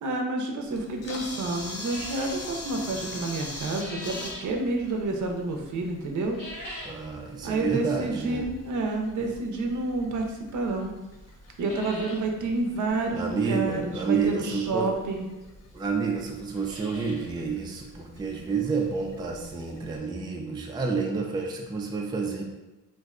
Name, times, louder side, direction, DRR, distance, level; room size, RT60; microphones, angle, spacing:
voice 1, 0.0-6.4 7.4-10.9 11.6-15.3, right 2 dB, 65° right, 2 dB, 0.5 m, -29 dB
Camera, 0.7-20.0, left 2 dB, 50° left, 0.6 m, -44 dB
sound 1, 1.8-2.4 3.4-4.5 6.2-7.0 7.4-7.5 8.4-8.5 10.1-10.2 10.7-10.8 11.0-11.1 11.4-12.2 12.6-12.7 12.9-13.0 14.5-14.6 15.4-15.5 15.7-15.8 16.3-17.3 17.7-17.8 18.3-18.4 18.8-18.9 20.6-20.7 20.9-21.0 21.4-21.5, left 1 dB, 70° left, 1.2 m, -42 dB
voice 2, 6.8-8.4 13.1-14.9 15.7-22.4, right 5 dB, 15° right, 1 dB, 0.3 m, -29 dB
2.6 x 2.1 x 3.6 m, 1.1 s
cardioid pair, 95°, 33 cm